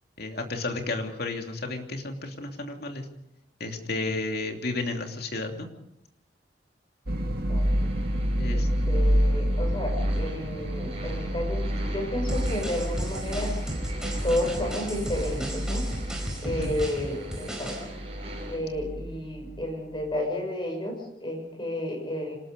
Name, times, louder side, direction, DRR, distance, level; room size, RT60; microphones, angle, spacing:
voice 1, 0.2-3.1 3.6-5.7 8.4-8.7 16.4-16.7, left 2 dB, 55° left, 3 dB, 2.8 m, -32 dB
sound 1, 7.1-20.0, equal, 55° right, 2.3 m, -29 dB
voice 2, 7.2-7.9 8.5-13.6 14.2-15.9 16.4-17.8 18.5-22.4, left 1 dB, 25° left, 3 dB, 6.5 m, -32 dB
sound 2, 7.6-18.6, right 1 dB, 35° right, 7.3 m, -43 dB
sound 3, 12.3-17.8, right 1 dB, 5° right, 4.5 m, -36 dB
26.5 x 19.5 x 5.2 m, 0.81 s
head